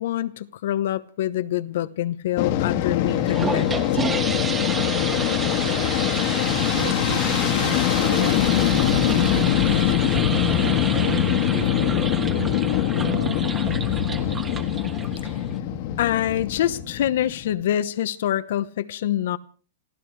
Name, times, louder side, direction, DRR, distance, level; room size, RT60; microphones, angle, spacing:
voice 1, 0.0-3.8 15.2-15.3 16.0-19.4, left 12 dB, 60° left, 0.9 m, -25 dB
Fixed-wing aircraft airplane, 2.4-17.5, left 11 dB, 45° left, 1.6 m, -23 dB
sound 1, 3.1-15.6, right 5 dB, 15° right, 1.4 m, -31 dB
voice 2, 6.7-10.0 10.5-12.7 13.0-14.2, right 11 dB, 50° right, 2.4 m, -36 dB
27.5 x 15.0 x 3.3 m
supercardioid pair, 160°, 0 cm